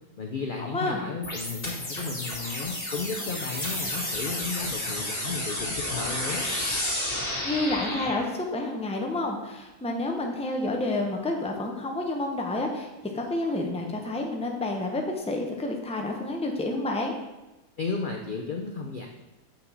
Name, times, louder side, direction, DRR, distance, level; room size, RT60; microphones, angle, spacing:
voice 1, 0.2-6.4 17.8-19.1, left 4 dB, 60° left, 2 dB, 0.5 m, -34 dB
voice 2, 0.7-1.1 7.4-12.9 13.1-17.1, left 2 dB, 5° left, 1 dB, 0.6 m, -29 dB
sound 1, 1.2-8.2, left 1 dB, 35° left, 2.6 m, -31 dB
7.4 x 5.7 x 4.0 m, 1.0 s
omnidirectional pair, 1.6 m